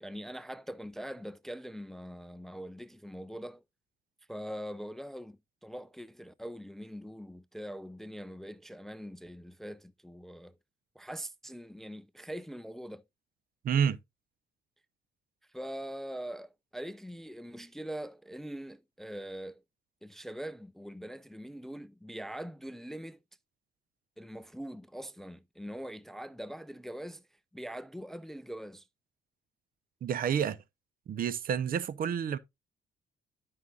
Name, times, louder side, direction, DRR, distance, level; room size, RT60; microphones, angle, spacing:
voice 1, 0.0-3.6 4.3-10.6 11.0-13.0 15.5-19.6 20.0-23.2 24.2-27.2 27.5-28.9, equal, ahead, 0.5 m, -42 dB
voice 2, 13.6-14.0 30.0-30.6 31.1-32.4, right 8 dB, 55° right, 0.7 m, -29 dB
12.5 x 5.5 x 2.4 m
cardioid pair, 90°, 18 cm